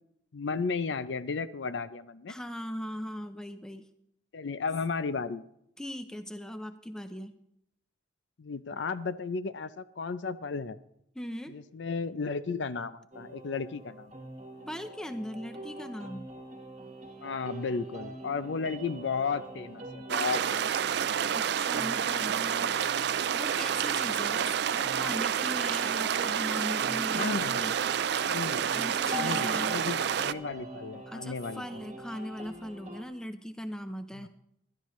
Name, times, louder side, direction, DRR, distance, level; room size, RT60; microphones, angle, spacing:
voice 1, 0.3-2.3 4.3-5.4 8.4-10.8 11.5-14.1 17.2-20.9 27.1-27.7 28.2-28.6 29.1-31.9 34.2-34.3, left 4 dB, 70° left, 14 dB, 0.5 m, -34 dB
voice 2, 2.3-3.9 5.8-7.3 11.1-11.6 14.7-16.3 21.3-22.7 23.3-27.7 28.7-29.8 31.1-34.3, equal, 5° left, 8 dB, 0.6 m, -39 dB
sound 1, 13.1-33.0, right 1 dB, 35° right, 1.4 m, -44 dB
sound 2, 20.1-30.3, right 8 dB, 60° right, 0.4 m, -29 dB
16.0 x 11.5 x 3.1 m, 0.75 s
head